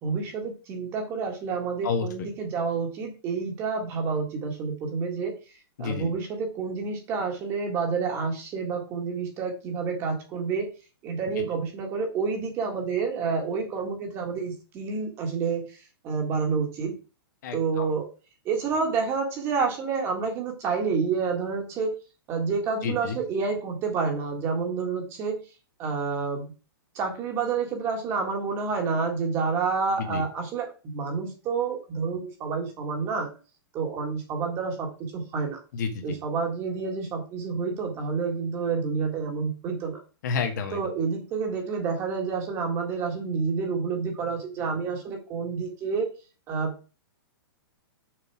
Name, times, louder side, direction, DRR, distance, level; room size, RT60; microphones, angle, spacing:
voice 1, 0.0-5.3 5.8-10.7 11.0-16.9 17.5-18.1 18.5-21.9 22.3-25.4 25.8-26.5 27.0-33.3 33.7-35.6 36.0-40.0 40.7-46.1 46.5-46.7, right 5 dB, 20° right, 3 dB, 1.8 m, -29 dB
voice 2, 1.8-2.3 5.8-6.1 17.4-17.9 22.8-23.2 30.0-30.2 35.7-36.2 40.2-40.8, left 5 dB, 50° left, 5 dB, 1.6 m, -30 dB
6.7 x 5.5 x 4.8 m, 0.33 s
hypercardioid pair, 175°, 13 cm